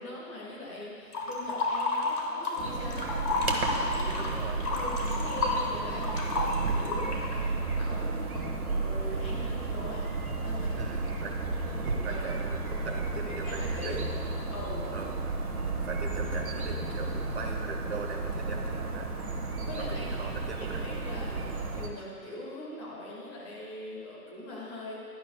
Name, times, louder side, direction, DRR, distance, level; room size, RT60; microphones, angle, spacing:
voice 1, 0.0-3.2 3.7-4.2 4.7-8.5 8.7-10.1 10.4-10.9 11.5-12.9 13.2-14.0 14.5-14.9 19.6-20.1 20.8-21.5 21.8-25.0, left 1 dB, 15° left, -6 dB, 1.8 m, -42 dB
sound 1, 1.1-2.6 2.9-7.3, left 3 dB, 65° left, 2.0 m, -31 dB
sound 2, 2.6-21.9, right 3 dB, 60° right, 1.4 m, -32 dB
voice 2, 3.9-4.7 10.8-11.3 11.9-14.1 14.9-15.4 15.7-19.1 19.7-20.9, right 3 dB, 40° right, 1 dB, 1.4 m, -40 dB
16.0 x 11.0 x 2.2 m, 2.3 s
figure-of-eight pair, 150°, 49 cm